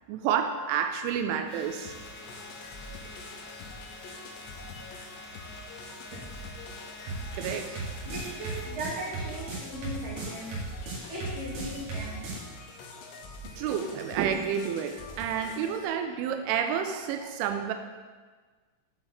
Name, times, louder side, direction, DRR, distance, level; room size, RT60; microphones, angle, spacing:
voice 1, 0.1-1.9 7.3-7.7 13.4-17.7, right 8 dB, 85° right, 7 dB, 3.0 m, -30 dB
sound 1, 1.5-8.7, left 2 dB, 30° left, 2.7 m, -47 dB
sound 2, 1.8-15.9, left 3 dB, 75° left, 2.8 m, -45 dB
sound 3, 7.1-12.4, right 3 dB, 60° right, 3.4 m, -36 dB
voice 2, 8.0-10.5 11.1-12.2, right 1 dB, 30° right, -8 dB, 2.1 m, -38 dB
7.8 x 7.2 x 4.0 m, 1.4 s
omnidirectional pair, 5.5 m